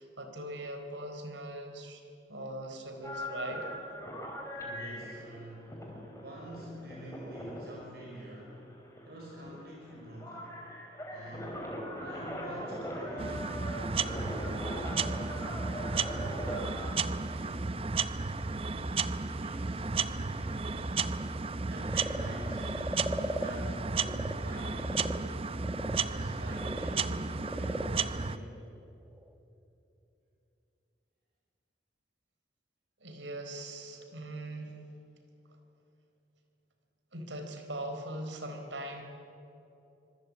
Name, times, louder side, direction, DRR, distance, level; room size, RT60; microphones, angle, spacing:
voice 1, 0.0-2.0 2.3-3.7 33.0-34.8 37.1-39.0, right 1 dB, 80° right, 5 dB, 4.3 m, -40 dB
sound 1, 3.0-17.0, equal, 15° left, 4.3 m, -41 dB
voice 2, 4.6-5.9 6.2-8.7 9.0-10.6 11.1-11.6 12.0-17.7 18.4-21.0 21.5-25.1 25.8-28.5, equal, 55° right, -2 dB, 5.4 m, -46 dB
Frog, 11.7-24.3 24.7-29.3, equal, 10° right, 1.3 m, -42 dB
sound 2, 13.2-28.4, right 4 dB, 30° right, 0.7 m, -33 dB
25.5 x 23.0 x 8.5 m, 2.9 s
head